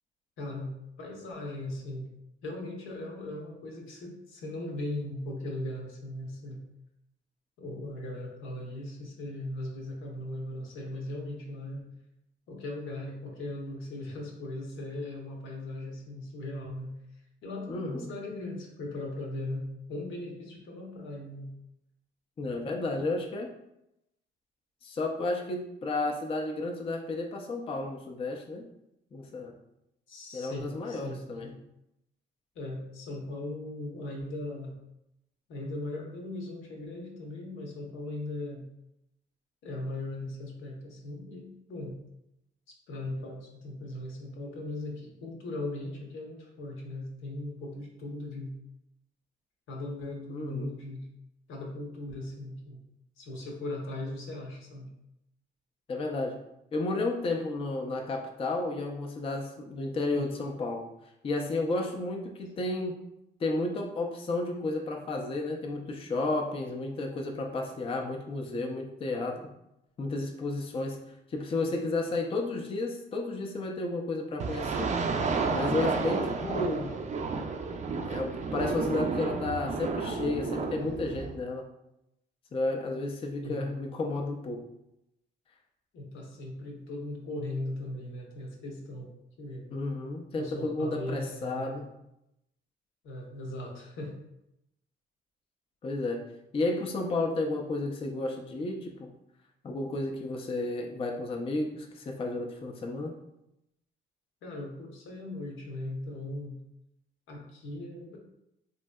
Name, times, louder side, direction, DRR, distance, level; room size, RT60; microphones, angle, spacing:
voice 1, 0.4-2.1 2.4-6.6 7.6-11.9 12.5-16.9 17.4-21.5 30.1-31.5 32.5-34.8 35.5-38.6 39.6-42.0 42.7-48.5 49.7-51.1 51.5-52.8 53.2-54.9 83.4-84.0 85.9-89.6 90.4-91.9 93.0-94.2 104.4-106.6 107.3-108.2, left 1 dB, 80° left, 0 dB, 0.8 m, -38 dB
voice 2, 17.7-18.1 22.4-23.5 24.8-28.6 29.1-29.5 30.3-31.5 50.3-50.7 55.9-56.4 56.7-60.8 61.2-63.0 63.4-69.4 70.0-71.0 71.3-74.9 75.5-76.9 78.0-81.6 82.5-84.6 89.7-91.8 95.8-96.2 96.5-99.1 99.6-103.1, left 2 dB, 30° left, 1 dB, 0.4 m, -32 dB
sound 1, 74.4-81.3, right 4 dB, 35° right, 0.4 m, -31 dB
3.2 x 2.6 x 2.2 m, 0.84 s
cardioid pair, 90°, 20 cm